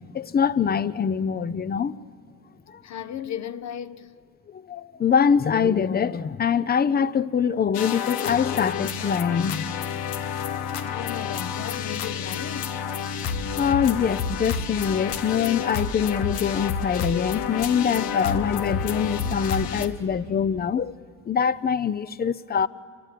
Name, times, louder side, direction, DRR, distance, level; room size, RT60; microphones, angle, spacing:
voice 1, 0.1-2.0 2.7-2.8 4.5-9.7 13.6-20.9 21.3-22.7, left 7 dB, 25° left, 0.6 m, -24 dB
voice 2, 2.8-4.1 10.8-12.8, left 9 dB, 50° left, 0.9 m, -35 dB
sound 1, 7.7-19.9, left 7 dB, 85° left, 1.4 m, -29 dB
28.0 x 23.0 x 7.6 m
cardioid pair, 115°, 36 cm